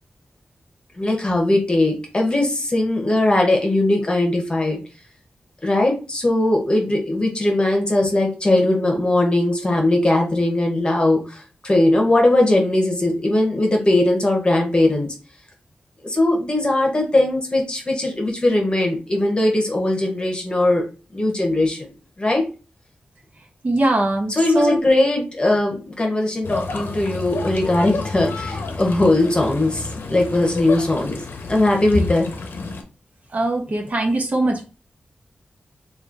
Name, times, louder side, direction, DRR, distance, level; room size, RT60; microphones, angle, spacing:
voice 1, 0.9-4.8 5.6-15.1 16.0-20.8 21.1-21.9 22.2-22.4 24.3-31.2 31.5-32.3, left 1 dB, 30° left, 1 dB, 1.2 m, -19 dB
voice 2, 23.6-24.7 31.9-32.0 33.3-34.6, right 1 dB, 45° right, 2 dB, 0.9 m, -21 dB
sound 1, 26.4-32.8, left 3 dB, 85° left, 0.6 m, -31 dB
3.2 x 2.5 x 3.9 m, 0.34 s
wide cardioid pair, 85°, 3 cm